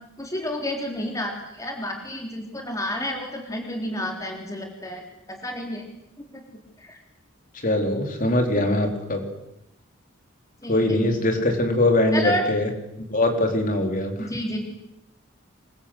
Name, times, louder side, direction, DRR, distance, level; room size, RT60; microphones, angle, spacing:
voice 1, 0.2-5.0 5.3-5.9 6.3-6.4 6.8-7.0 10.6-11.0 12.1-12.4 14.2-14.6, left 1 dB, 15° left, 2 dB, 3.7 m, -30 dB
voice 2, 7.6-9.2 10.7-12.7 13.1-14.3, left 1 dB, 45° left, 4 dB, 4.4 m, -22 dB
26.0 x 23.5 x 8.2 m, 0.84 s
head